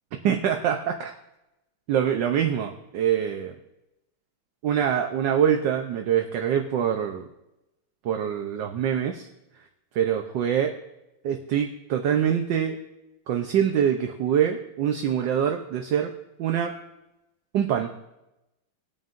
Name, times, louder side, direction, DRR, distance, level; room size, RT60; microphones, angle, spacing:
voice 1, 0.2-1.1 1.9-3.5 4.6-7.3 8.0-9.2 9.9-10.7 11.2-12.8 13.3-16.1 16.4-16.7 17.5-17.9, right 9 dB, 65° right, 4 dB, 1.3 m, -24 dB
19.0 x 9.1 x 2.6 m, 0.92 s
omnidirectional pair, 2.4 m